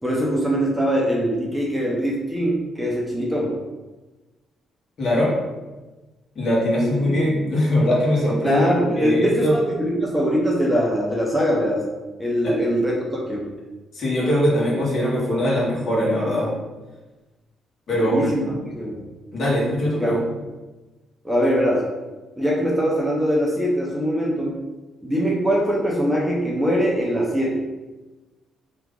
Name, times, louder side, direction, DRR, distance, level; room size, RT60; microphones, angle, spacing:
voice 1, 0.0-3.6 6.7-7.2 8.4-11.8 12.2-13.5 17.9-18.4 18.8-19.0 19.8-20.2 21.2-21.9 22.4-24.6 25.0-27.6, equal, 5° right, -3 dB, 0.7 m, -22 dB
voice 2, 5.0-5.3 6.3-8.7 9.0-9.6 12.4-12.5 13.9-16.5 17.9-18.6 19.3-20.2, left 1 dB, 55° left, -6 dB, 1.3 m, -21 dB
3.0 x 2.4 x 3.6 m, 1.2 s
cardioid pair, 90°, 0 cm